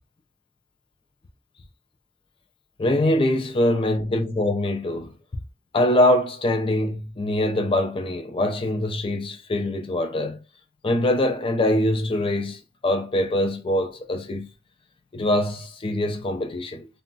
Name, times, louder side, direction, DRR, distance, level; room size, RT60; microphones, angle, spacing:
voice 1, 2.8-5.1 5.7-10.4 10.8-14.5 15.1-16.9, left 1 dB, 25° left, 0.4 m, -23 dB
2.2 x 2.1 x 3.8 m
head